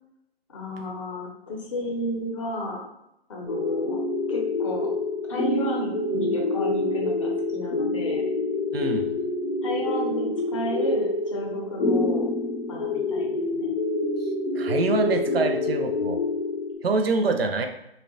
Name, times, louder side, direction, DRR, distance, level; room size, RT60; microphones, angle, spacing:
voice 1, 0.5-2.8 3.3-4.0 4.3-4.9 5.3-8.2 9.6-12.3 12.7-13.7, left 1 dB, 30° left, -1 dB, 0.6 m, -33 dB
sound 1, 3.5-16.8, left 2 dB, 70° left, 0.6 m, -26 dB
voice 2, 8.7-9.1 14.2-16.2 16.8-17.7, right 3 dB, 70° right, 6 dB, 0.4 m, -25 dB
2.7 x 2.1 x 2.6 m, 0.83 s
figure-of-eight pair, 135°, 31 cm